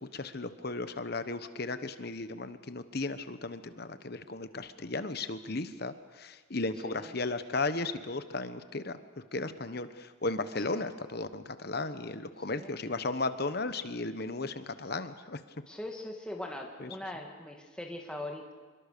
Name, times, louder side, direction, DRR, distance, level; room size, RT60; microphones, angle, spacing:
voice 1, 0.0-9.0 9.3-15.4 16.8-16.9, left 3 dB, 50° left, 11 dB, 1.1 m, -35 dB
voice 2, 6.8-7.2 10.6-10.8 12.5-12.8 15.7-18.5, left 1 dB, 5° left, 1 dB, 2.1 m, -41 dB
26.5 x 22.5 x 6.8 m, 1.4 s
head